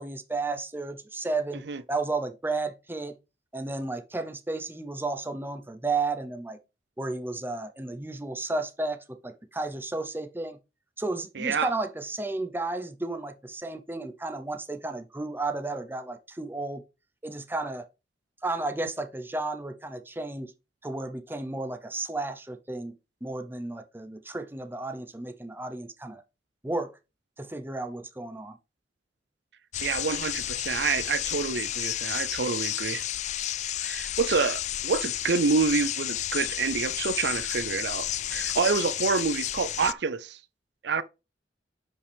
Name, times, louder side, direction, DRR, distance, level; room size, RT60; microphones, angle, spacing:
voice 1, 0.0-3.2 3.5-6.6 7.0-10.6 11.0-16.8 17.2-17.8 18.4-20.5 20.8-22.9 23.2-26.2 26.6-26.9 27.4-28.6, right 3 dB, 10° right, 0.8 m, -33 dB
voice 2, 11.4-11.7 29.8-33.0 33.8-40.4 40.8-41.0, right 5 dB, 70° right, 0.5 m, -27 dB
sound 1, 29.7-39.9, left 12 dB, 40° left, 0.3 m, -31 dB
9.6 x 5.4 x 3.5 m
head